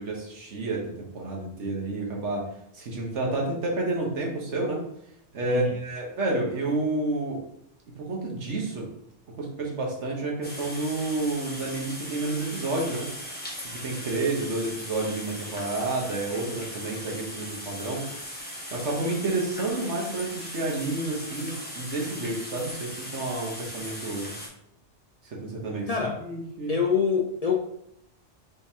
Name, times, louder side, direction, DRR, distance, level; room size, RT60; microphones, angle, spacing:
voice 1, 0.0-2.5 2.7-4.8 5.3-7.4 8.0-8.9 9.3-13.1 13.8-18.0 18.7-24.4 25.2-26.7, right 2 dB, 85° right, -1 dB, 1.4 m, -30 dB
sound 1, 10.4-24.5, equal, 10° left, 1.0 m, -38 dB
voice 2, 25.9-26.2 26.7-27.6, left 6 dB, 50° left, -1 dB, 0.5 m, -25 dB
5.2 x 3.5 x 2.8 m, 0.76 s
omnidirectional pair, 1.2 m